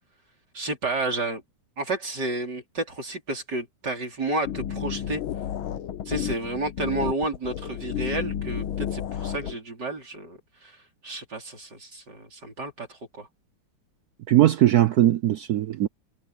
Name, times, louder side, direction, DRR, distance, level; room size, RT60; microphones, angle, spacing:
voice 1, 0.5-1.4 1.8-5.2 6.1-10.8 11.0-13.3, right 2 dB, 55° right, 5.2 m, -31 dB
sound 1, 4.4-9.6, left 9 dB, 80° left, 1.7 m, -31 dB
voice 2, 14.3-15.9, right 13 dB, 75° right, 0.9 m, -19 dB
omnidirectional pair, 2.2 m